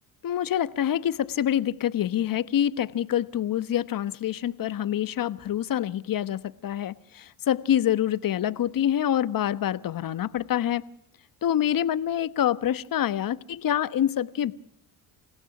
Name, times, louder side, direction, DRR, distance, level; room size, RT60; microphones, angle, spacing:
voice 1, 0.2-10.8 11.4-14.5, left 10 dB, 50° left, 1.2 m, -26 dB
28.0 x 17.0 x 6.0 m
hypercardioid pair, 60°, 43 cm